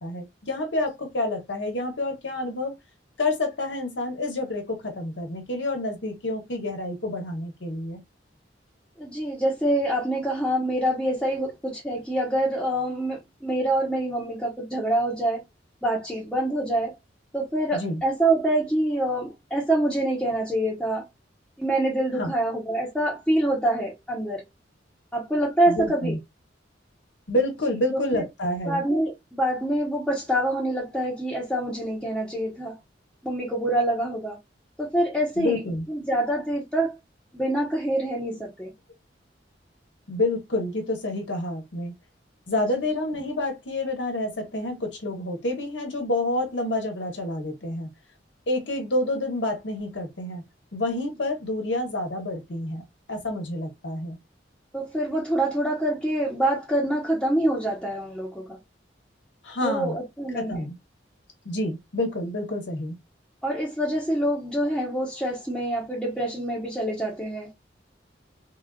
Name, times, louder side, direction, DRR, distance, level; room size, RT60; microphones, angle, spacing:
voice 1, 0.0-2.7 3.2-8.0 17.7-18.0 22.2-22.3 25.7-26.2 27.3-28.8 35.4-35.9 40.1-41.9 42.5-47.9 48.5-50.4 50.7-52.8 53.1-54.2 59.4-60.0 60.3-60.8 61.4-63.0, left 2 dB, 75° left, 1.1 m, -28 dB
voice 2, 9.0-15.4 15.8-17.0 17.3-21.0 21.6-24.5 25.1-26.2 27.9-28.3 28.6-32.8 33.2-34.4 34.8-35.6 35.9-37.0 37.3-38.7 54.7-58.6 59.6-60.7 63.4-67.5, right 1 dB, 5° left, 0.9 m, -26 dB
3.5 x 2.4 x 2.3 m
head